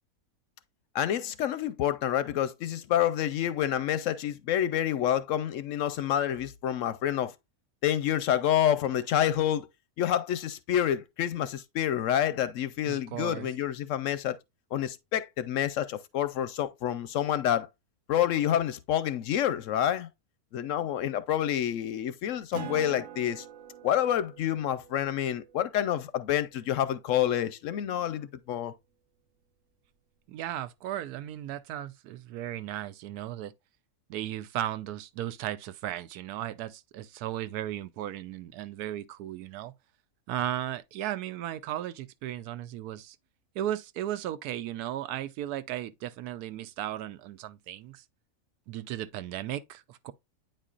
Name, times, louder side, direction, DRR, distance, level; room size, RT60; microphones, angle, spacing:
voice 1, 0.9-7.3 7.8-9.7 10.0-14.3 14.7-17.7 18.1-20.1 20.5-23.4 23.8-28.7, left 11 dB, 70° left, 0.8 m, -28 dB
voice 2, 12.9-13.5 30.3-33.5 34.1-39.8 40.3-43.2 43.5-48.0 48.7-50.1, right 12 dB, 85° right, 1.1 m, -36 dB
Acoustic guitar, 22.5-27.5, right 10 dB, 65° right, 1.0 m, -46 dB
9.0 x 4.4 x 2.4 m
omnidirectional pair, 1.6 m